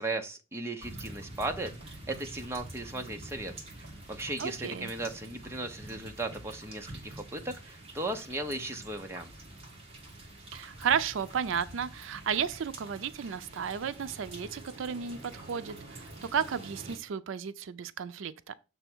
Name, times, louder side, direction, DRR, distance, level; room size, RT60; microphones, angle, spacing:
voice 1, 0.0-3.5 3.8-9.3, right 2 dB, 15° right, 0.7 m, -36 dB
sound 1, 0.8-17.0, right 2 dB, 30° right, 1.5 m, -47 dB
voice 2, 4.4-4.9 10.5-18.6, right 7 dB, 70° right, 0.4 m, -33 dB
6.8 x 3.4 x 6.0 m
head